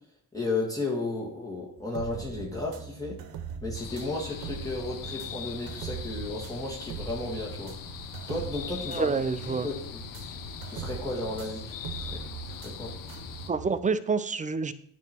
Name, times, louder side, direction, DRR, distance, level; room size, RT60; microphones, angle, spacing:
voice 1, 0.3-3.2 3.6-7.7 8.3-9.1 9.4-10.0 10.7-12.2 12.5-12.9, left 2 dB, 10° left, -4 dB, 1.9 m, -34 dB
sound 1, 1.8-13.8, right 7 dB, 85° right, 0.7 m, -41 dB
sound 2, 3.7-13.5, left 9 dB, 65° left, 0.7 m, -41 dB
voice 2, 8.9-9.7 13.5-14.7, right 5 dB, 20° right, 13 dB, 0.4 m, -28 dB
9.1 x 3.1 x 4.3 m, 0.66 s
supercardioid pair, 65°, 35 cm